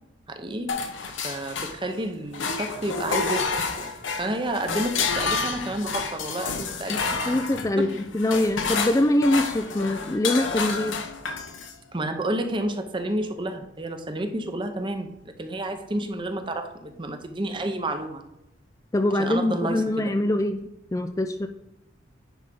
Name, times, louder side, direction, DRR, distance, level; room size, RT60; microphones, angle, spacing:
voice 1, 0.3-0.8 1.2-7.4 7.8-7.9 11.9-18.3 19.1-20.1, right 1 dB, 25° right, 7 dB, 0.8 m, -30 dB
sound 1, 0.7-2.0 2.3-11.8, left 4 dB, 85° left, 1.0 m, -29 dB
voice 2, 7.3-11.0 18.9-21.5, left 1 dB, 15° left, 6 dB, 0.4 m, -24 dB
10.5 x 3.5 x 5.3 m, 0.87 s
head